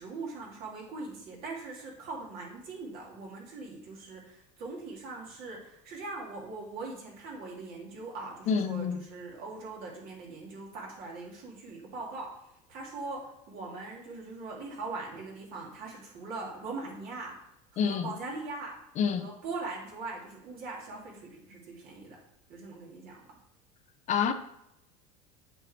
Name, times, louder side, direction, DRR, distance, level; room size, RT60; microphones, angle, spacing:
voice 1, 0.0-12.3 12.7-17.3 17.7-18.8 19.1-22.2 22.5-23.2, right 3 dB, 55° right, 3.0 m, -41 dB
voice 2, 8.5-9.0 17.8-18.1 19.0-19.3 24.1-24.3, left 6 dB, 45° left, 0.7 m, -27 dB
7.7 x 4.8 x 4.5 m
supercardioid pair, 100°, 17 cm